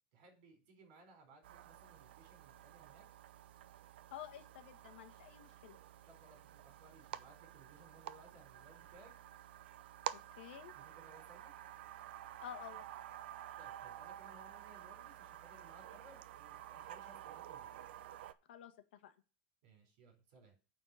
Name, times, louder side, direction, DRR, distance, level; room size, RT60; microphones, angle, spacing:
voice 1, 0.1-3.1 6.1-9.1 10.8-11.5 13.6-17.7 19.6-20.5, right 3 dB, 50° right, 4 dB, 4.3 m, -62 dB
sound 1, 1.4-18.3, right 12 dB, 80° right, 0.7 m, -51 dB
voice 2, 4.1-5.8 10.1-10.7 12.4-12.8 18.5-19.1, left 11 dB, 80° left, 8 dB, 1.4 m, -51 dB
9.1 x 4.2 x 6.3 m, 0.33 s
supercardioid pair, 180°, 6 cm